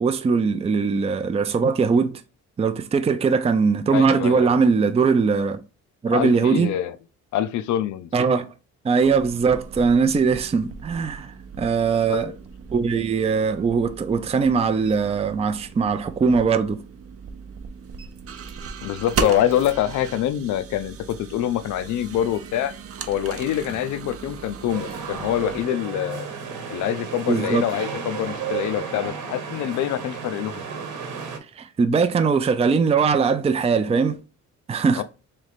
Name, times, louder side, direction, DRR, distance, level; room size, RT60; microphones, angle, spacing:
voice 1, 0.0-2.2 2.6-5.6 6.0-6.7 8.1-8.5 8.8-11.3 11.6-12.3 12.7-16.8 27.3-27.7 31.6-34.2 34.7-35.0, right 5 dB, 20° right, 0.4 m, -20 dB
voice 2, 3.9-4.6 6.1-7.0 7.3-8.1 12.1-12.4 18.8-22.7 23.1-26.3 26.7-30.7 34.9-35.0, left 11 dB, 75° left, 0.5 m, -25 dB
sound 1, 9.0-25.7, right 6 dB, 50° right, 0.7 m, -37 dB
sound 2, 24.7-31.4, right 6 dB, 85° right, 1.2 m, -33 dB
3.3 x 3.1 x 4.0 m
cardioid pair, 90°, 30 cm